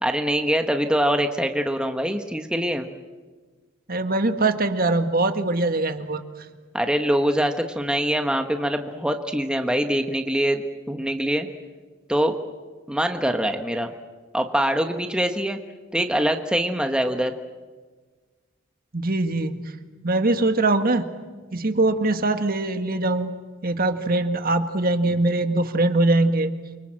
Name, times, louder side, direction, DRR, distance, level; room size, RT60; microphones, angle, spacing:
voice 1, 0.0-2.9 6.7-11.5 12.1-12.4 12.9-13.9 14.3-15.6 15.9-17.3, equal, 5° right, 5 dB, 1.2 m, -24 dB
voice 2, 3.9-6.2 18.9-19.7 20.0-21.1 21.5-23.3 23.6-26.5, right 2 dB, 45° right, 8 dB, 1.8 m, -22 dB
29.0 x 24.5 x 7.6 m, 1.4 s
head